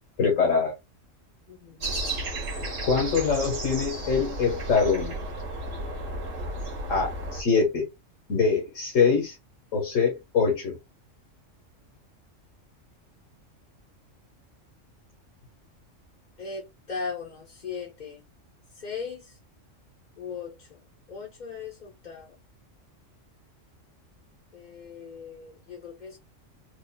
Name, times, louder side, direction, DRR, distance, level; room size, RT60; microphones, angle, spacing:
voice 1, 0.2-0.7 2.5-5.1 6.9-7.8 8.3-9.3 9.7-10.8, left 5 dB, 80° left, 1.6 m, -24 dB
voice 2, 1.5-1.9 16.4-18.2 18.7-19.4 20.2-20.8 21.1-22.4 24.5-26.2, left 5 dB, 40° left, 1.0 m, -38 dB
sound 1, 1.8-7.4, right 1 dB, 80° right, 1.7 m, -33 dB
4.9 x 2.6 x 2.2 m
omnidirectional pair, 1.3 m